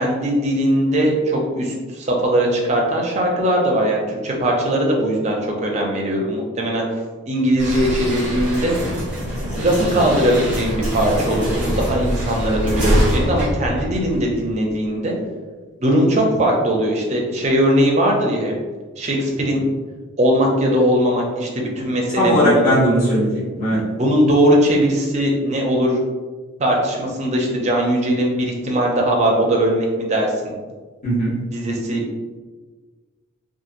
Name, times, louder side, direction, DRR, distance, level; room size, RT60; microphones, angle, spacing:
voice 1, 0.0-6.9 7.3-8.7 9.6-15.1 15.8-18.5 19.0-19.7 20.2-22.6 24.0-26.0 26.6-30.5 31.5-32.1, equal, 30° right, -1 dB, 0.5 m, -19 dB
sound 1, 7.6-14.5, equal, 5° right, 0.8 m, -24 dB
voice 2, 22.1-23.8 31.0-31.4, equal, 35° left, -12 dB, 1.2 m, -18 dB
2.8 x 2.4 x 2.5 m, 1.4 s
head